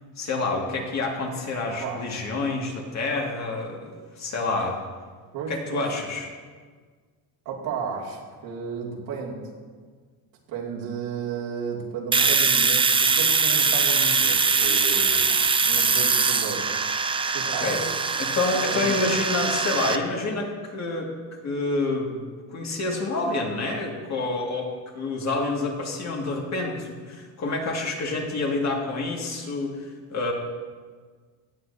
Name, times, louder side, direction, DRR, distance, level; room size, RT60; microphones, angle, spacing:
voice 1, 0.2-4.8 5.5-6.3 17.1-17.3 17.6-17.8 18.2-21.1 21.4-22.2 22.5-30.3, left 3 dB, 40° left, 0 dB, 2.1 m, -28 dB
voice 2, 1.6-2.0 5.3-5.9 7.4-9.5 10.5-16.7 17.3-17.9 18.7-19.0, right 5 dB, 80° right, -3 dB, 2.7 m, -33 dB
Domestic sounds home sounds, 12.1-20.0, right 5 dB, 15° right, 0.4 m, -22 dB
17.0 x 8.1 x 2.8 m, 1.5 s
cardioid pair, 115°, 42 cm